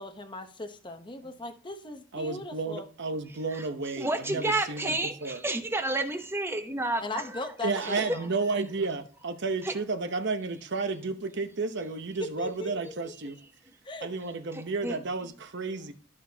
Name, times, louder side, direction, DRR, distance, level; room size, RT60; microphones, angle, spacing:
voice 1, 0.0-2.9 7.0-8.3 12.2-13.1 13.8-14.1, left 3 dB, 20° left, 0.8 m, -39 dB
voice 2, 2.1-5.4 7.6-13.4 14.0-15.9, right 3 dB, 55° right, 0.8 m, -32 dB
voice 3, 4.0-7.2 7.8-8.2 9.6-9.7 14.5-14.9, right 2 dB, 10° right, 0.8 m, -30 dB
12.5 x 6.0 x 2.8 m
head